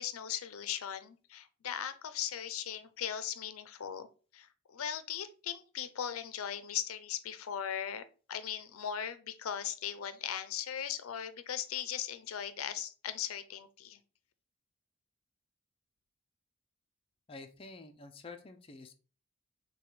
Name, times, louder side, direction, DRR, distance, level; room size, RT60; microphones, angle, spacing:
voice 1, 0.0-14.0, left 9 dB, 85° left, 12 dB, 0.5 m, -39 dB
voice 2, 17.3-18.9, left 3 dB, 25° left, 5 dB, 0.4 m, -49 dB
6.5 x 2.3 x 3.1 m, 0.36 s
head